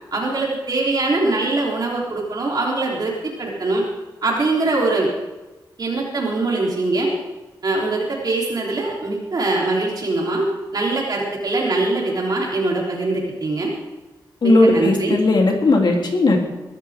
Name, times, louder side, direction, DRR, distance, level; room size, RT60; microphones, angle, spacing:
voice 1, 0.1-3.8 4.2-5.1 5.8-7.1 7.6-10.5 10.7-13.7 14.4-15.2, right 2 dB, 55° right, -3 dB, 3.8 m, -22 dB
voice 2, 14.4-16.4, left 2 dB, 65° left, 0 dB, 3.5 m, -16 dB
22.5 x 13.0 x 3.8 m, 1.1 s
wide cardioid pair, 130°, 8 cm